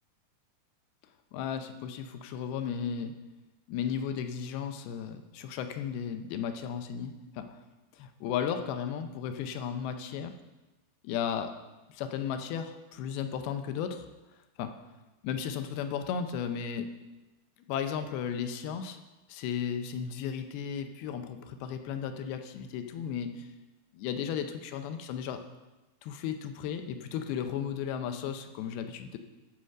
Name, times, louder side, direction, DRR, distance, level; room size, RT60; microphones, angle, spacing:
voice 1, 1.3-3.1 3.7-7.6 7.9-10.3 11.0-11.5 11.9-14.0 14.6-14.7 15.2-16.9 17.7-19.0 19.3-23.5 23.9-25.4 26.0-29.2, left 8 dB, 80° left, 7 dB, 2.4 m, -35 dB
13.5 x 4.9 x 6.5 m, 1.1 s
omnidirectional pair, 4.9 m